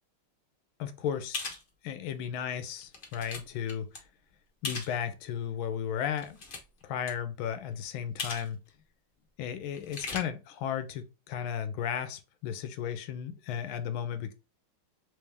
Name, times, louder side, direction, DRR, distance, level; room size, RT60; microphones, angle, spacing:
voice 1, 0.8-1.5 1.8-3.9 4.6-6.4 6.8-8.6 9.4-14.3, left 8 dB, 90° left, 1.4 m, -34 dB
sound 1, 1.3-1.6 2.2-2.3 2.8-3.4 3.7-4.0 4.6-4.9 6.1-6.8 7.1-7.2 8.2-8.5 8.7-8.8 9.7-10.2, left 3 dB, 35° left, 0.9 m, -37 dB
3.5 x 3.3 x 3.4 m
omnidirectional pair, 2.2 m